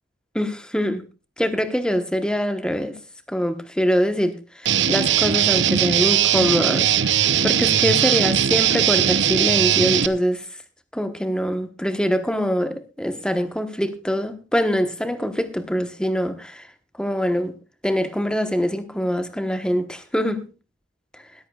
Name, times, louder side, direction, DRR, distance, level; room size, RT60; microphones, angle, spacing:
voice 1, 0.3-1.0 1.4-3.0 3.3-10.5 10.9-16.7 17.0-17.5 17.8-20.5, equal, 5° left, 1.1 m, -24 dB
Guitar, 4.7-10.1, right 9 dB, 80° right, 0.8 m, -19 dB
20.0 x 14.0 x 2.4 m
head